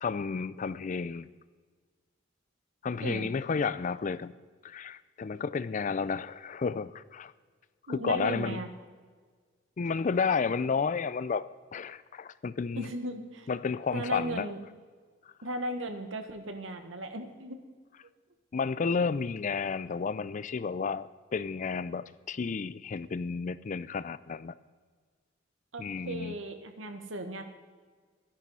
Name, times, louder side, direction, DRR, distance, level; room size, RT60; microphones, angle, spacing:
voice 1, 0.0-1.3 2.8-4.3 4.6-7.3 7.9-8.6 9.8-12.9 13.5-14.5 18.5-24.5 25.8-26.3, left 5 dB, 40° left, 16 dB, 0.4 m, -32 dB
voice 2, 3.0-3.3 7.9-8.7 12.8-13.5 13.9-14.6 15.4-17.6 25.7-27.4, right 1 dB, 90° right, 7 dB, 1.4 m, -36 dB
13.5 x 10.5 x 5.5 m, 1.5 s
head